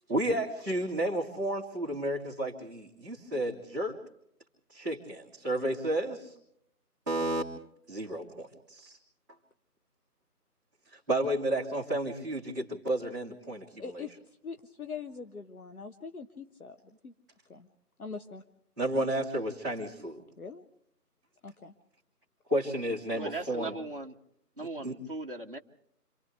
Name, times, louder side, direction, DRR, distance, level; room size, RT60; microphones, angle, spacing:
voice 1, 0.1-4.0 4.7-6.3 7.1-7.4 7.9-9.0 10.9-13.8 18.8-20.2 22.5-23.8 24.6-25.0, right 1 dB, 10° right, -14 dB, 2.0 m, -32 dB
voice 2, 13.8-14.1 14.4-17.1 17.5-17.7 18.0-18.4 20.4-20.6 21.4-21.7, left 5 dB, 60° left, 7 dB, 1.2 m, -42 dB
voice 3, 23.1-24.1 24.6-25.6, right 2 dB, 35° right, 0 dB, 0.9 m, -38 dB
30.0 x 26.5 x 3.3 m, 0.75 s
figure-of-eight pair, 175°, 48 cm